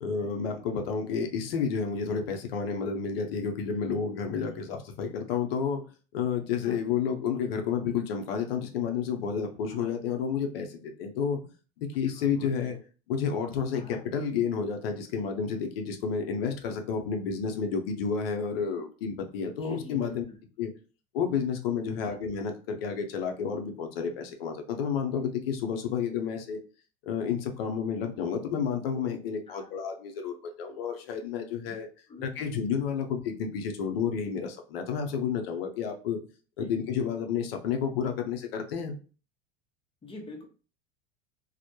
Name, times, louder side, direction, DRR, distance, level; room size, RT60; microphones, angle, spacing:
voice 1, 0.0-5.8 6.1-11.4 11.8-12.8 13.1-20.2 20.6-20.7 21.1-26.6 27.0-31.9 32.2-36.2 36.6-39.0, left 6 dB, 85° left, 5 dB, 0.6 m, -30 dB
voice 2, 12.2-12.7 13.7-14.0 19.6-20.1 21.9-22.2 29.5-29.7 31.7-31.8 32.1-32.3 36.6-36.7 40.0-40.4, left 2 dB, 20° left, 2 dB, 0.6 m, -45 dB
2.1 x 2.0 x 2.8 m, 0.37 s
supercardioid pair, 100°, 29 cm